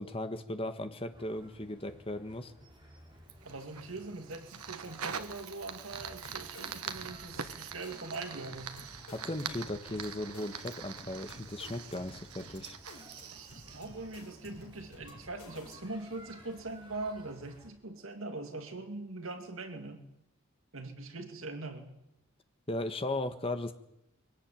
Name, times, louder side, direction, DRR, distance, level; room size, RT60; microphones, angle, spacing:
voice 1, 0.0-2.5 9.1-12.8 22.7-23.7, left 1 dB, 25° left, 8 dB, 1.5 m, -37 dB
sound 1, 1.1-17.7, equal, 20° right, 6.6 m, -56 dB
Fire, 3.3-14.7, right 7 dB, 90° right, 1.5 m, -44 dB
voice 2, 3.4-8.7 13.3-20.0 20.7-22.0, right 2 dB, 65° right, 6 dB, 2.6 m, -42 dB
sound 2, 5.9-16.0, left 1 dB, 80° left, 5.0 m, -53 dB
23.0 x 17.5 x 9.1 m, 0.82 s
head